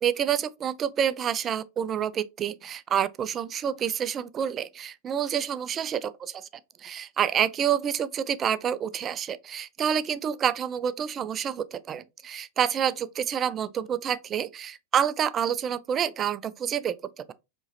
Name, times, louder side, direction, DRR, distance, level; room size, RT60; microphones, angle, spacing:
voice 1, 0.0-6.1 6.8-17.3, right 8 dB, 25° right, 0.3 m, -28 dB
4.6 x 3.0 x 2.6 m
figure-of-eight pair, 90°, 0 cm